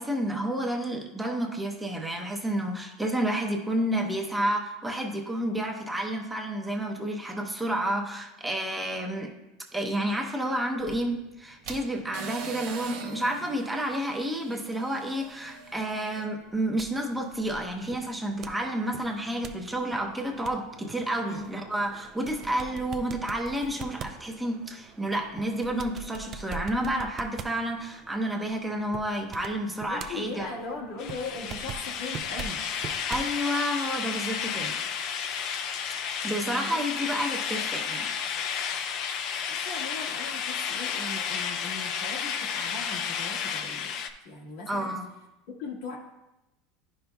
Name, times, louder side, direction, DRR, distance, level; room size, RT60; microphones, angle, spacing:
voice 1, 0.0-9.3 9.7-30.5 33.1-34.8 36.0-38.1 44.7-45.1, right 1 dB, 5° right, 1 dB, 0.7 m, -30 dB
sound 1, 10.8-16.3, right 6 dB, 70° right, 0.9 m, -42 dB
sound 2, 16.4-33.4, right 5 dB, 35° right, 0.4 m, -44 dB
voice 2, 29.9-32.6 36.4-37.1 39.5-43.9 44.2-44.9 45.5-46.0, left 3 dB, 75° left, -1 dB, 1.5 m, -39 dB
sound 3, 31.0-44.1, left 7 dB, 55° left, 0.5 m, -32 dB
10.0 x 5.4 x 2.3 m, 0.96 s
supercardioid pair, 130°, 0 cm